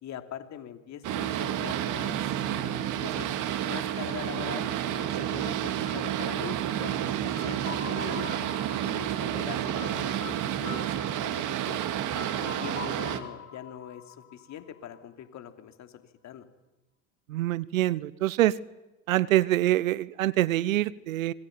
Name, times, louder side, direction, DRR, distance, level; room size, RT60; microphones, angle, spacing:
voice 1, 0.0-3.3 3.6-8.3 8.8-11.9 12.4-16.5, left 10 dB, 45° left, 7 dB, 3.2 m, -42 dB
Boat Water vehicle, 1.0-13.2, right 11 dB, 50° right, 2.5 m, -30 dB
sound 1, 3.5-15.2, left 7 dB, 90° left, 2.8 m, -46 dB
voice 2, 17.3-18.5 19.1-21.3, right 15 dB, 80° right, 21 dB, 1.0 m, -25 dB
26.5 x 21.5 x 9.3 m, 1.0 s
hypercardioid pair, 80°, 40 cm